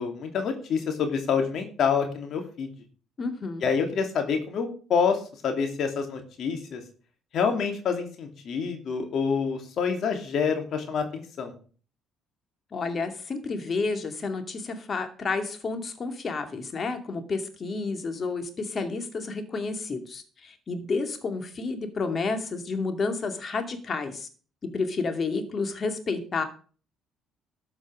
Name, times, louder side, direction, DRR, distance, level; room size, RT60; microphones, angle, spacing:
voice 1, 0.0-2.7 3.6-5.2 5.4-6.8 7.3-11.5, left 6 dB, 60° left, 5 dB, 2.8 m, -27 dB
voice 2, 3.2-3.7 12.7-24.3 24.7-26.4, left 4 dB, 40° left, 7 dB, 2.5 m, -30 dB
13.0 x 6.4 x 6.3 m, 0.40 s
hypercardioid pair, 60°, 0 cm